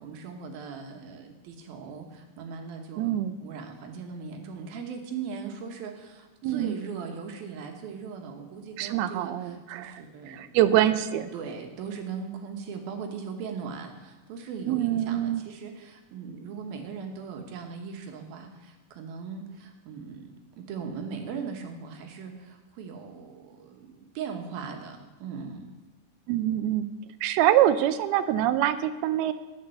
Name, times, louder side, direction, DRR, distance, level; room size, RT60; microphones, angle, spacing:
voice 1, 0.0-10.8 11.3-25.7, right 6 dB, 75° right, 4 dB, 3.1 m, -39 dB
voice 2, 3.0-3.4 6.4-6.7 8.8-11.3 14.7-15.4 26.3-26.9 27.2-29.3, right 12 dB, 90° right, 11 dB, 2.6 m, -25 dB
11.5 x 9.3 x 7.8 m, 1.2 s
omnidirectional pair, 4.4 m